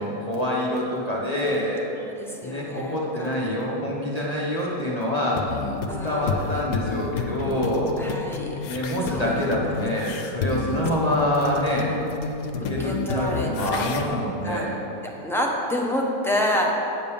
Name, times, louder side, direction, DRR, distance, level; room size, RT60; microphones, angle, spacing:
voice 1, 0.0-1.8 2.4-5.7 6.0-8.0 8.6-14.8, left 1 dB, 30° left, -5 dB, 0.9 m, -26 dB
voice 2, 1.9-3.4 5.9-6.4 8.0-8.6 9.1-9.5 11.0-11.2 12.8-13.8 14.4-14.7 15.2-17.0, left 1 dB, 5° left, -2 dB, 0.5 m, -28 dB
Bass beat, 5.4-14.1, left 5 dB, 85° left, 1.2 m, -30 dB
8.8 x 5.3 x 7.0 m, 3.0 s
omnidirectional pair, 1.7 m